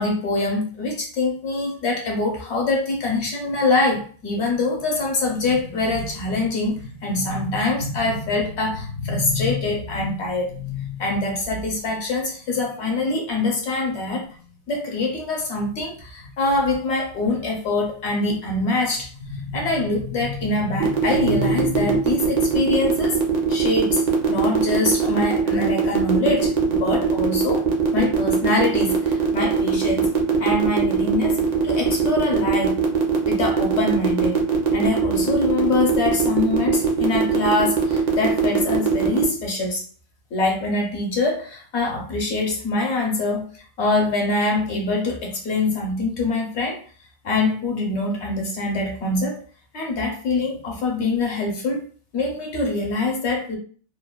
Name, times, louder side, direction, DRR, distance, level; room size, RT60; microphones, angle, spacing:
voice 1, 0.0-14.3 14.7-23.2 23.5-30.1 30.4-32.8 33.2-34.4 34.7-39.8 40.3-43.5 43.8-46.8 47.2-49.4 49.7-51.9 52.1-53.6, left 2 dB, 65° left, 0 dB, 1.0 m, -24 dB
sound 1, 20.8-39.2, right 6 dB, 50° right, 0.6 m, -21 dB
3.0 x 2.1 x 2.2 m, 0.42 s
omnidirectional pair, 1.3 m